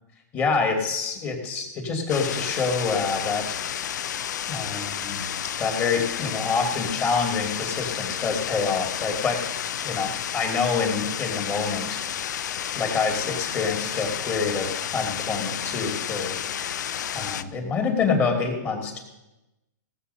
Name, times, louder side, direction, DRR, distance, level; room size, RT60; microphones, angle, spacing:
voice 1, 0.3-3.6 4.5-5.2 5.6-9.5 9.8-12.0 12.7-16.3 17.1-19.0, left 5 dB, 20° left, 3 dB, 2.5 m, -26 dB
sound 1, 2.1-17.4, left 9 dB, 70° left, 0.6 m, -31 dB
17.0 x 7.4 x 5.6 m, 0.98 s
hypercardioid pair, 135°, 10 cm